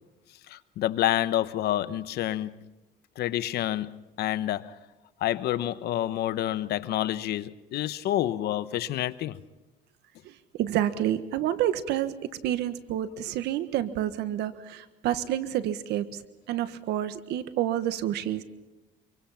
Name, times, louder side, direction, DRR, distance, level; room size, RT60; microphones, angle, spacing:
voice 1, 0.5-2.6 3.2-4.8 5.2-9.4, left 13 dB, 75° left, 1.0 m, -28 dB
voice 2, 10.2-12.1 12.4-16.2 16.5-18.4, right 12 dB, 85° right, 1.5 m, -29 dB
26.0 x 23.5 x 5.8 m
cardioid pair, 110°, 17 cm